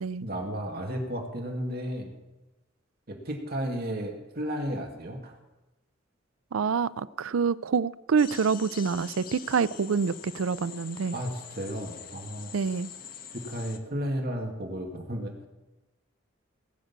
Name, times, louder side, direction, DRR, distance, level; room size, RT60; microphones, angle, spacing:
voice 1, 0.2-2.1 3.1-5.4 11.1-12.5 13.3-15.3, equal, 50° right, 2 dB, 2.3 m, -33 dB
voice 2, 6.5-11.1 12.5-12.9, right 5 dB, 85° right, 17 dB, 0.4 m, -27 dB
sound 1, 8.2-13.8, left 7 dB, 45° left, 1.2 m, -44 dB
20.0 x 6.7 x 8.7 m, 1.0 s
head